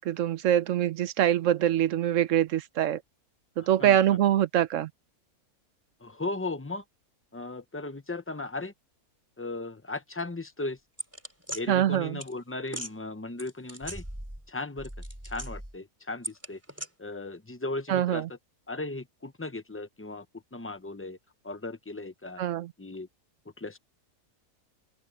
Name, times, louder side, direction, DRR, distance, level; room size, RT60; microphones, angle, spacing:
voice 1, 0.1-3.0 3.6-4.9 11.7-12.2 17.9-18.3 22.4-22.7, right 11 dB, 65° right, 0.9 m, -24 dB
voice 2, 3.6-4.2 6.0-6.8 7.3-8.7 9.4-10.8 11.5-14.0 14.5-14.9 15.2-16.6 17.0-18.4 18.7-20.3 20.5-21.2 21.4-22.4 22.8-23.1 23.6-23.8, left 2 dB, 10° left, 0.6 m, -36 dB
sound 1, 11.0-11.6 12.2-12.3 12.7-12.9 13.4-14.5 14.8-15.8 16.2-16.9, equal, 10° right, 3.7 m, -38 dB
open air
omnidirectional pair, 1.6 m